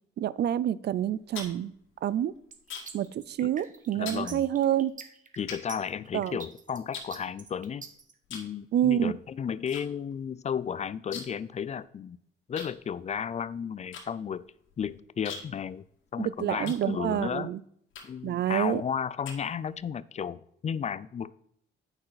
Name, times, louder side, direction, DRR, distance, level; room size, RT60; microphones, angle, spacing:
voice 1, 0.2-1.7 2.0-2.3 2.9-4.9 6.1-6.4 8.7-9.1 16.2-17.6 18.2-18.8, right 11 dB, 60° right, 18 dB, 0.4 m, -27 dB
sound 1, 1.0-3.1 3.4-3.7 4.0-4.3 4.9-5.0 5.5-6.4 6.9-7.8 8.2-8.6 8.8-9.8 10.1-10.2 10.5-11.5 11.8-11.9 12.5-17.3 17.9-18.3 18.8-19.9, left 5 dB, 75° left, 1.9 m, -43 dB
sound 2, 2.5-8.1, right 5 dB, 40° right, 1.1 m, -45 dB
voice 2, 3.9-4.5 5.4-7.9 8.3-12.2 12.5-14.4 14.8-15.8 16.1-17.5 18.0-21.3, left 7 dB, 35° left, 18 dB, 0.4 m, -33 dB
8.8 x 6.0 x 4.0 m, 0.70 s
cardioid pair, 90°, 20 cm